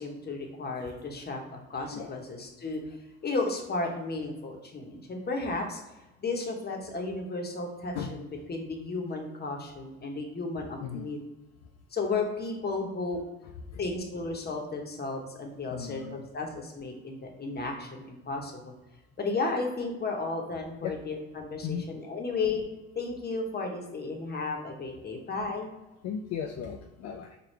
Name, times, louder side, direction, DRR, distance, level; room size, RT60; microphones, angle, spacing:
voice 1, 0.0-1.4 1.7-2.8 3.2-5.8 6.2-11.2 11.9-13.2 13.8-18.7 19.2-22.6 22.9-25.7, left 3 dB, 30° left, 2 dB, 1.0 m, -33 dB
voice 2, 1.8-2.1 7.9-8.1 10.8-11.1 13.7-13.8 15.7-16.2 20.8-21.0 21.6-21.8 26.0-27.4, left 8 dB, 60° left, 3 dB, 0.4 m, -36 dB
4.9 x 2.3 x 3.2 m, 1.0 s
hypercardioid pair, 60°, 32 cm